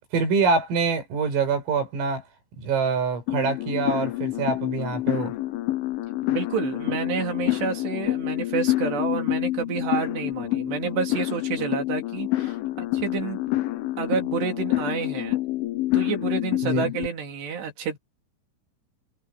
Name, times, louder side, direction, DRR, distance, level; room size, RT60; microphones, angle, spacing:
voice 1, 0.1-2.2 2.6-5.3 16.6-16.9, right 4 dB, 80° right, 9.5 m, -25 dB
sound 1, 3.3-17.1, left 16 dB, 75° left, 3.5 m, -27 dB
voice 2, 6.3-13.4 14.0-15.4 15.9-18.0, right 6 dB, 55° right, 5.1 m, -29 dB
omnidirectional pair, 5.9 m